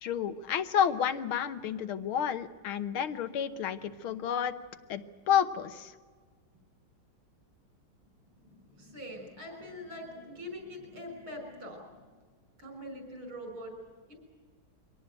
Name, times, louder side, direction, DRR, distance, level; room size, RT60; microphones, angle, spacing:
voice 1, 0.0-4.5 4.9-5.9, left 8 dB, 85° left, 10 dB, 1.9 m, -30 dB
voice 2, 8.3-12.2 12.6-13.7 14.1-14.2, left 1 dB, 75° right, 3 dB, 7.0 m, -44 dB
23.5 x 18.0 x 9.1 m, 1.5 s
omnidirectional pair, 2.2 m